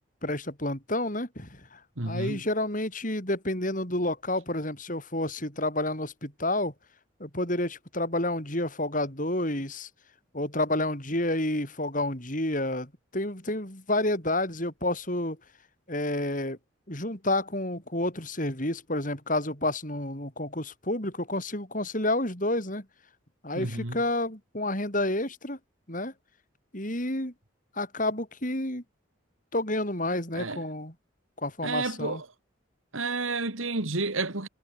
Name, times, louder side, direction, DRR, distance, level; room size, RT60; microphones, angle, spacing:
voice 1, 0.0-6.7 7.2-9.9 10.3-15.4 15.9-16.6 16.9-22.9 23.4-25.6 25.9-26.1 26.7-27.3 27.8-28.8 29.5-30.9 31.4-32.2, left 1 dB, 40° left, 7.1 m, -30 dB
voice 2, 2.0-2.4 23.5-24.0 30.3-30.6 31.6-32.3 32.9-34.5, right 3 dB, 85° right, 2.9 m, -31 dB
head